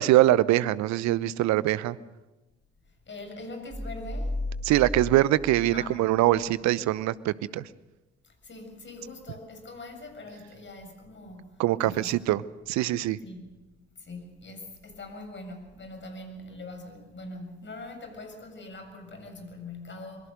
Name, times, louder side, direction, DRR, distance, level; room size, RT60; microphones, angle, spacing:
voice 1, 0.0-2.0 4.6-7.6 11.6-12.4 12.7-13.2, right 15 dB, 60° right, 19 dB, 0.9 m, -23 dB
voice 2, 3.1-4.4 5.7-6.0 8.2-12.2 13.2-13.6 14.0-20.3, left 2 dB, 35° left, 5 dB, 7.2 m, -42 dB
sound 1, 3.7-6.6, left 1 dB, 5° right, 1.2 m, -35 dB
26.5 x 22.5 x 6.6 m, 1.1 s
figure-of-eight pair, 50°, 32 cm